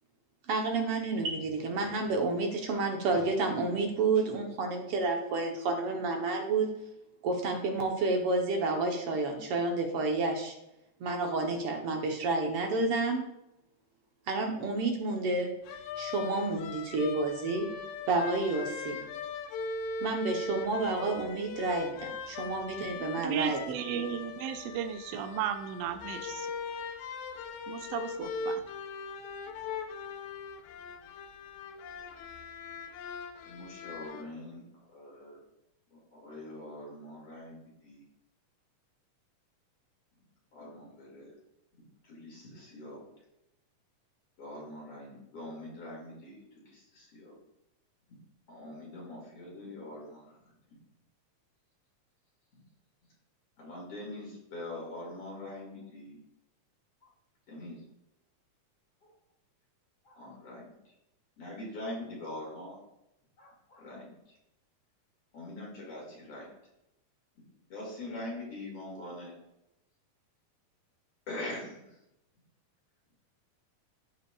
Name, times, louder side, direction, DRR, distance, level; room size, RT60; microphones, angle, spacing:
voice 1, 0.5-6.7 7.2-10.5 11.0-13.2 14.3-15.5 16.0-17.7 18.1-19.0 20.0-23.6, right 3 dB, 60° right, 2 dB, 1.7 m, -30 dB
sound 1, 15.7-34.2, left 4 dB, 85° left, 2.0 m, -40 dB
voice 2, 23.2-26.5 27.7-28.6, right 8 dB, 75° right, 6 dB, 1.6 m, -35 dB
voice 3, 33.5-35.4 35.9-38.0 40.5-41.3 41.7-43.0 44.4-47.4 48.5-50.5 52.5-52.6 53.6-56.2 57.0-57.1 57.5-57.8 59.0-59.1 60.0-60.9 61.4-62.8 63.4-64.4 65.3-66.5 67.7-69.3 71.3-72.0, left 1 dB, 55° left, -4 dB, 3.3 m, -43 dB
13.5 x 4.8 x 2.4 m, 0.85 s
omnidirectional pair, 3.4 m